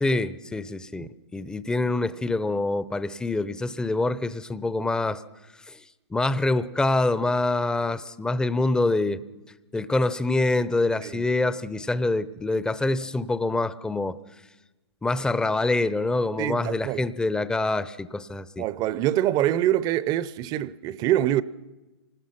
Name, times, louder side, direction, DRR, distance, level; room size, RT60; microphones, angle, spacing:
voice 1, 0.0-5.2 5.7-5.8 6.1-9.2 9.7-14.2 15.0-18.7, left 2 dB, 5° left, 0.6 m, -25 dB
voice 2, 16.4-17.0 18.6-21.4, right 13 dB, 30° right, 0.7 m, -25 dB
26.0 x 19.5 x 5.9 m
hypercardioid pair, 120°, 14 cm